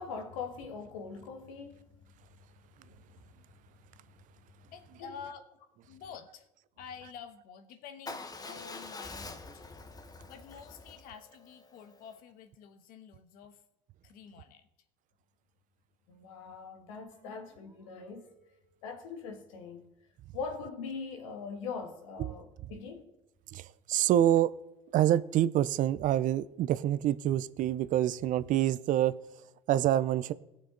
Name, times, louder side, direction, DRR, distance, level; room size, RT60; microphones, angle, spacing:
voice 1, 0.0-1.8 5.0-5.1 16.1-18.3 18.8-19.8 20.3-23.1, left 5 dB, 80° left, 1.8 m, -41 dB
voice 2, 4.6-5.5 5.9-6.5 6.8-9.7 10.3-13.6 14.0-14.7, left 7 dB, 60° left, 1.3 m, -49 dB
Motorcycle / Engine starting / Idling, 8.1-12.2, left 3 dB, 25° left, 1.2 m, -46 dB
sound 1, 17.1-19.1, right 4 dB, 15° right, 2.6 m, -62 dB
voice 3, 22.2-22.7 23.5-24.5 24.9-30.3, right 12 dB, 55° right, 0.6 m, -27 dB
18.0 x 6.6 x 3.9 m
hypercardioid pair, 75°, 17 cm